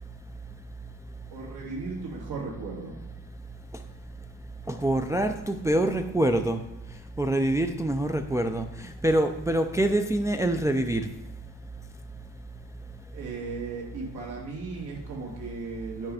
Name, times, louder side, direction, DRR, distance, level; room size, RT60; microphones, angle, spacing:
voice 1, 1.3-3.0 13.1-16.1, right 4 dB, 80° right, -2 dB, 2.5 m, -36 dB
voice 2, 4.7-6.6 7.2-8.7 9.0-11.1, right 1 dB, 10° right, 5 dB, 0.3 m, -25 dB
9.0 x 3.3 x 5.5 m, 0.92 s
cardioid pair, 120°, 39 cm